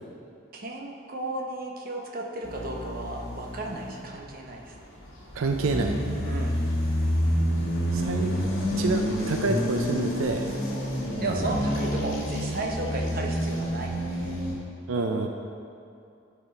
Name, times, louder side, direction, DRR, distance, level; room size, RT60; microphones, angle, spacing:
voice 1, 0.5-4.7 6.2-6.7 11.2-14.3, right 2 dB, 45° right, 0 dB, 0.9 m, -34 dB
sound 1, 2.4-4.1 4.7-14.6, equal, 75° left, 1.5 m, -28 dB
voice 2, 5.3-6.0 7.9-8.4 8.7-10.5 14.9-15.3, right 3 dB, 90° right, 3 dB, 0.5 m, -27 dB
12.0 x 4.2 x 4.1 m, 2.5 s
head